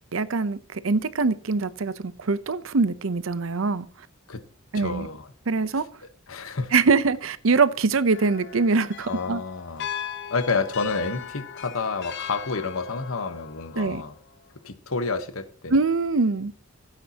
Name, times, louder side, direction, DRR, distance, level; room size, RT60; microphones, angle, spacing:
voice 1, 0.1-3.9 4.7-5.1 5.5-5.9 6.7-9.4 13.8-14.0 15.7-16.5, right 4 dB, 75° right, 0.7 m, -23 dB
voice 2, 4.7-5.3 5.7-5.8 6.3-6.7 9.1-9.9 10.3-14.1 14.6-15.8, left 4 dB, 90° left, 1.2 m, -29 dB
sound 1, 8.1-14.4, left 8 dB, 60° left, 1.0 m, -38 dB
16.0 x 9.0 x 2.9 m
head